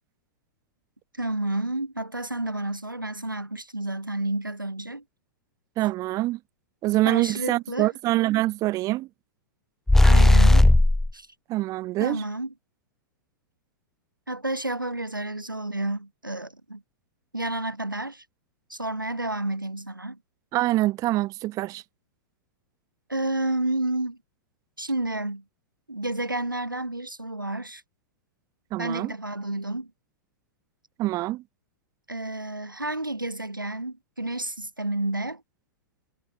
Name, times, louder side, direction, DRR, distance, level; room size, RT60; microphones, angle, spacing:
voice 1, 1.2-5.0 7.0-7.9 10.0-10.7 11.1-11.3 12.0-12.5 14.3-16.8 17.3-18.2 18.7-20.2 23.1-24.2 24.8-25.4 25.9-27.8 28.8-29.9 32.1-35.4, right 2 dB, 90° right, 7.1 m, -30 dB
voice 2, 5.8-6.4 6.8-9.1 11.5-12.2 20.5-21.8 28.7-29.1 31.0-31.4, right 17 dB, 35° right, 1.7 m, -25 dB
sound 1, 9.9-11.1, left 2 dB, 5° left, 0.5 m, -15 dB
figure-of-eight pair, 100°, 11 cm